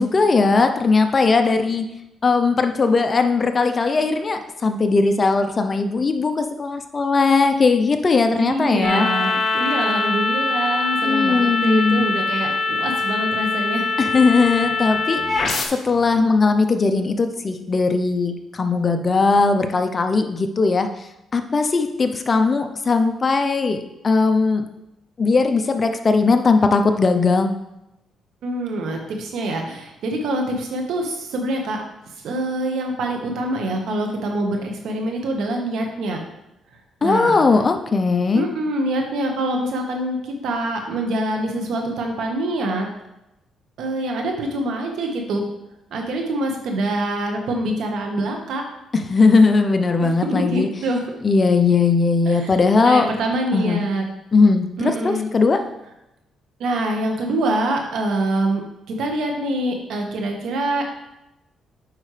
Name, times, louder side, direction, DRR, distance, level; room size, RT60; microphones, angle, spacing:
voice 1, 0.0-1.9 2.2-9.1 11.0-12.1 14.0-21.1 21.3-24.7 25.2-27.5 37.0-38.4 48.9-50.7 51.2-53.1 53.5-53.8 54.3-55.6, left 4 dB, 35° left, 7 dB, 0.7 m, -19 dB
voice 2, 8.4-13.9 26.2-26.3 28.4-31.8 32.2-36.2 37.0-37.4 38.3-42.9 43.8-45.4 45.9-48.6 50.3-51.0 52.2-52.5 52.8-54.0 54.8-55.3 56.6-58.6 58.9-60.8, right 1 dB, 75° right, 2 dB, 1.4 m, -25 dB
sound 1, 8.8-15.7, left 3 dB, 50° left, 1.4 m, -23 dB
8.7 x 5.3 x 3.4 m, 0.89 s
cardioid pair, 90°, 0 cm